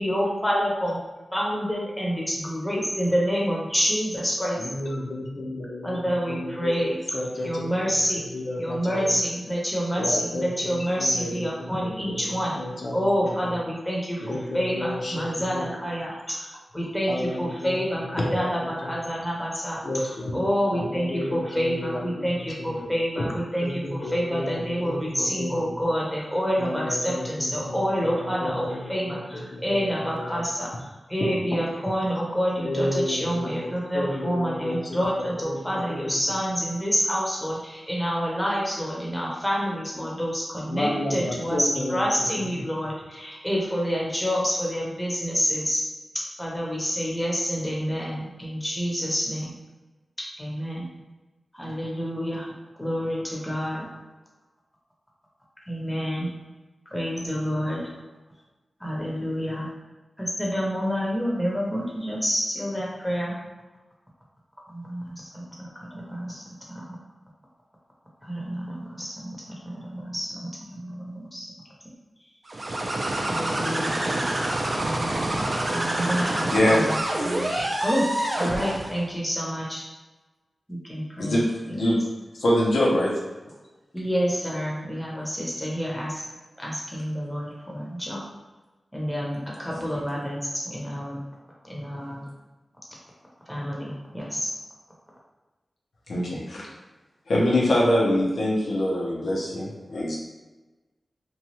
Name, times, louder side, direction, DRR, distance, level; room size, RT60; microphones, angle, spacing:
voice 1, 0.0-1.0 1.3-4.6 5.8-7.0 7.4-8.2 8.6-12.6 12.9-16.5 16.7-20.0 20.3-30.7 31.1-45.8 46.4-49.5 50.4-50.9 51.5-52.5 52.8-53.9 55.7-56.3 56.9-57.9 58.8-59.7 60.2-63.4 64.7-67.0 68.2-69.3 69.6-70.5 70.7-71.5 73.2-74.0 74.7-77.0 77.8-78.1 78.3-79.8 80.7-81.4 83.9-86.2 86.6-88.2 88.9-91.2 91.6-92.3 93.5-94.5, equal, 5° left, -4 dB, 0.7 m, -28 dB
voice 2, 4.6-9.2 10.0-13.3 14.2-15.8 17.1-19.0 19.8-20.5 20.7-22.9 23.6-25.9 26.6-30.4 31.2-31.6 32.6-36.1 40.6-42.6, left 1 dB, 50° left, -1 dB, 0.6 m, -32 dB
sound 1, 72.5-79.0, right 1 dB, 45° right, 0.4 m, -27 dB
voice 3, 76.5-76.9 77.2-77.7 81.2-82.0 82.4-83.1 89.7-89.8 96.1-96.7 97.3-100.2, left 1 dB, 85° left, -5 dB, 0.7 m, -23 dB
2.8 x 2.3 x 3.0 m, 1.2 s
wide cardioid pair, 90°, 0 cm